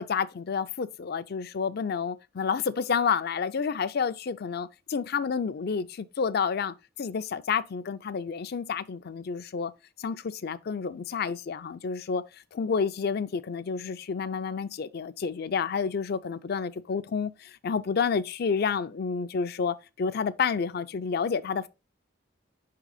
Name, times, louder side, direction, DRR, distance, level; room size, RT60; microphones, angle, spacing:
voice 1, 0.0-9.7 10.0-12.2 12.5-21.7, left 6 dB, 55° left, 0.4 m, -29 dB
5.3 x 3.8 x 4.9 m
head